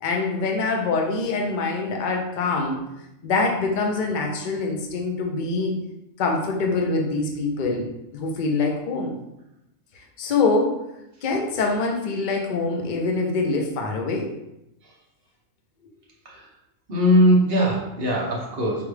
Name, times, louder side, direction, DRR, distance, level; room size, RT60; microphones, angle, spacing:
voice 1, 0.0-2.8 3.2-5.7 6.2-9.1 10.2-10.8 11.2-14.3, left 3 dB, 50° left, 1 dB, 0.7 m, -24 dB
voice 2, 16.9-18.8, equal, 50° right, -3 dB, 1.0 m, -20 dB
5.0 x 2.3 x 3.2 m, 0.86 s
omnidirectional pair, 1.4 m